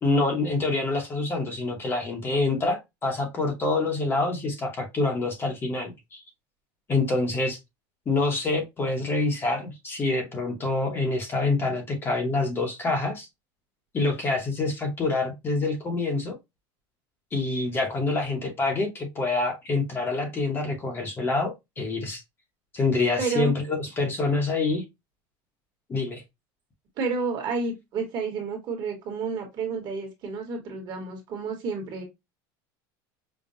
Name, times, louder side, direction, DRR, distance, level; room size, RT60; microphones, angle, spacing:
voice 1, 0.0-6.2 6.9-7.6 8.1-13.3 13.9-16.3 17.3-22.2 22.7-24.8 25.9-26.2, left 3 dB, 20° left, 0.8 m, -26 dB
voice 2, 23.2-23.5 27.0-32.0, right 4 dB, 40° right, 1.3 m, -30 dB
5.3 x 2.2 x 2.5 m
cardioid pair, 165°, 11 cm